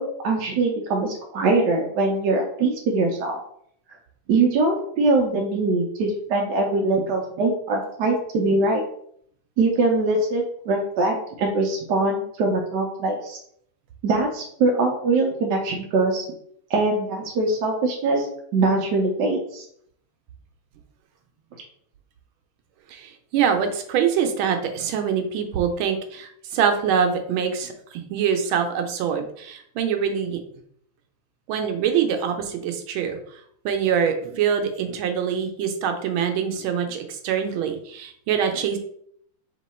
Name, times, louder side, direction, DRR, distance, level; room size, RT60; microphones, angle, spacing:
voice 1, 0.0-3.4 4.3-8.8 9.6-13.4 14.0-16.2 16.7-18.3 18.5-19.6, right 3 dB, 70° right, 0 dB, 1.2 m, -22 dB
voice 2, 22.9-30.4 31.5-33.2 33.6-38.8, right 7 dB, 90° right, 5 dB, 1.5 m, -24 dB
3.7 x 3.0 x 4.1 m, 0.67 s
omnidirectional pair, 2.2 m